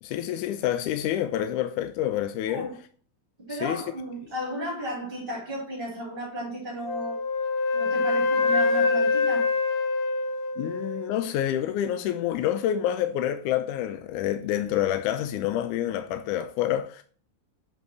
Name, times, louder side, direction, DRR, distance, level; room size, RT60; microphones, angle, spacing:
voice 1, 0.0-2.7 3.6-3.8 10.6-17.0, left 11 dB, 75° left, 2.0 m, -27 dB
voice 2, 2.4-2.8 3.4-7.2 7.7-9.5, equal, 15° right, 3.6 m, -34 dB
Wind instrument woodwind instrument, 6.9-11.1, left 4 dB, 60° left, 1.5 m, -25 dB
7.8 x 7.3 x 2.8 m
omnidirectional pair, 4.0 m